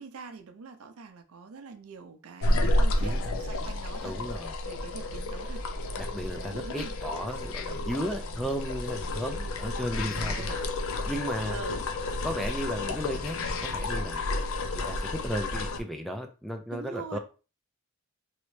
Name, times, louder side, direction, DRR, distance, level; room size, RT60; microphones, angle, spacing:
voice 1, 0.0-4.2 4.6-5.6 6.3-7.0 10.3-10.7 11.5-11.8 12.5-12.6 16.7-17.2, right 4 dB, 70° right, 0.5 m, -43 dB
sound 1, 2.4-15.8, left 2 dB, 65° left, 0.5 m, -31 dB
voice 2, 4.0-4.5 6.0-10.6 11.1-11.6 12.2-14.2 14.7-17.2, equal, ahead, 0.3 m, -34 dB
3.1 x 2.8 x 3.1 m
head